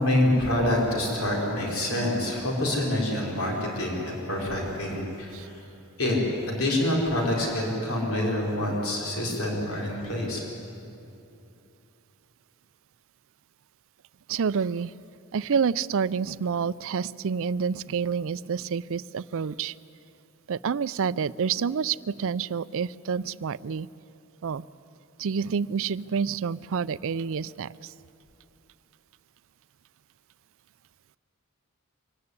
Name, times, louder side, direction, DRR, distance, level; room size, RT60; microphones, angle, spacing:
voice 1, 0.0-5.6 6.0-6.2 6.5-10.4, left 1 dB, 70° left, -2 dB, 5.1 m, -26 dB
voice 2, 14.3-14.9 15.3-19.7 20.5-23.9 24.4-24.6 25.2-27.7, right 6 dB, 65° right, 18 dB, 0.4 m, -28 dB
24.0 x 16.5 x 9.8 m, 2.8 s
head